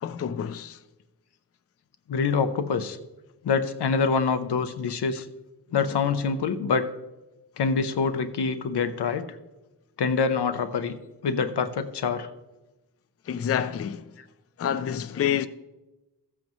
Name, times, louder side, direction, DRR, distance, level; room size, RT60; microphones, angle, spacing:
voice 1, 0.0-0.8 13.3-14.0 14.6-15.5, left 9 dB, 40° left, 0.4 m, -28 dB
voice 2, 2.1-3.0 3.4-5.3 5.7-6.9 7.6-9.2 10.0-11.0 11.2-12.3, left 5 dB, 80° left, 0.8 m, -25 dB
14.0 x 7.7 x 3.1 m
wide cardioid pair, 95°, 40 cm